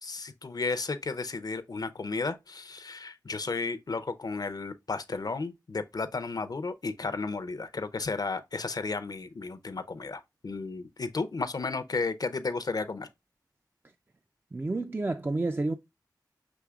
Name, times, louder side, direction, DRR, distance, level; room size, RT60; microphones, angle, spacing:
voice 1, 0.0-13.1, left 4 dB, 60° left, 0.5 m, -33 dB
voice 2, 14.5-15.8, right 2 dB, 30° right, 0.4 m, -29 dB
6.1 x 3.1 x 2.2 m
wide cardioid pair, 70°, 7 cm